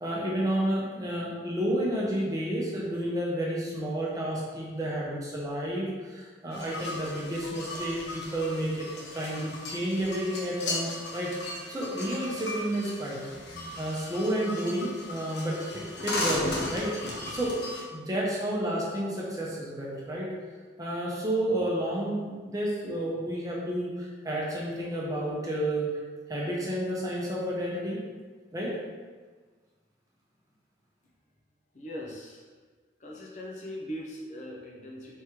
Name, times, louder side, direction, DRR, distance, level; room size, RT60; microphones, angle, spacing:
voice 1, 0.0-13.2 13.8-17.6 17.9-20.3 20.8-25.9 26.3-28.0 28.5-28.8, right 1 dB, 20° right, -4 dB, 0.8 m, -31 dB
sound 1, 6.5-17.8, left 2 dB, 70° left, 0.9 m, -36 dB
voice 2, 31.7-32.5 33.0-35.2, equal, 40° left, -3 dB, 0.6 m, -40 dB
3.6 x 3.2 x 4.4 m, 1.4 s
head